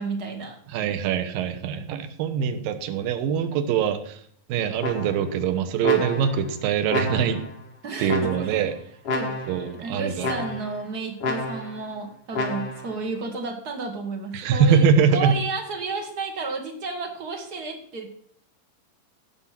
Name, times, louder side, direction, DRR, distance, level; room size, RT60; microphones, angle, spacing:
voice 1, 0.0-0.6 7.8-8.6 9.1-9.4 9.8-14.9 15.1-18.1, right 3 dB, 40° right, 3 dB, 1.4 m, -32 dB
voice 2, 0.7-4.2 4.5-7.4 8.0-8.7 9.5-10.3 14.3-15.4, right 7 dB, 75° right, 8 dB, 2.7 m, -23 dB
sound 1, 4.8-5.4 5.8-6.5 6.9-7.5 8.1-8.7 9.0-9.7 10.2-10.8 11.2-11.8 12.3-12.9, left 3 dB, 45° left, 2.3 m, -30 dB
16.0 x 5.5 x 5.9 m, 0.62 s
omnidirectional pair, 4.2 m